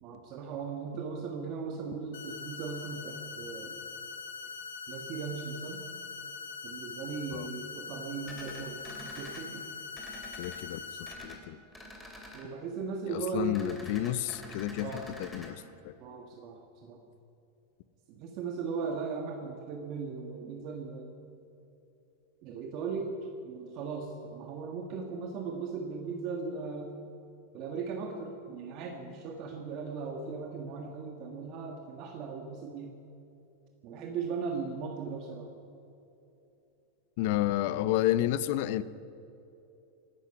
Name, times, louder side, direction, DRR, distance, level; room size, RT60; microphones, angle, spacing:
voice 1, 0.0-3.8 4.9-5.8 6.6-8.8 9.2-9.7 12.3-13.6 14.8-15.1 16.0-17.0 18.1-21.1 22.4-23.2 23.4-26.9 27.5-32.9 33.8-35.5, right 5 dB, 45° right, 3 dB, 1.6 m, -38 dB
sound 1, 2.1-11.1, left 5 dB, 80° left, 2.3 m, -42 dB
sound 2, 8.2-9.4 9.9-10.6 11.0-11.4 11.7-12.4 13.5-15.5, equal, 10° left, 2.9 m, -47 dB
voice 2, 10.4-10.8 11.2-11.6 13.1-15.9 37.2-38.8, left 13 dB, 60° left, 16 dB, 0.7 m, -31 dB
20.0 x 11.5 x 5.9 m, 2.9 s
supercardioid pair, 135°, 0 cm